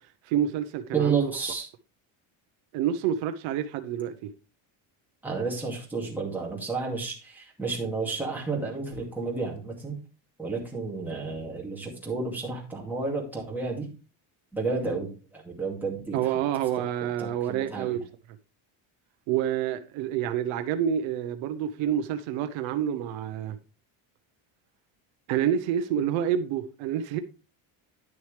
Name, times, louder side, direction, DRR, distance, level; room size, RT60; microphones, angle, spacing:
voice 1, 0.3-1.3 2.7-4.3 16.1-18.0 19.3-23.5 25.3-27.2, right 10 dB, 75° right, 1.0 m, -28 dB
voice 2, 0.9-1.7 5.2-10.0 10.4-13.9 14.5-16.4 17.0-18.0, right 4 dB, 5° right, 2.4 m, -31 dB
10.5 x 6.4 x 3.3 m
cardioid pair, 170°, 47 cm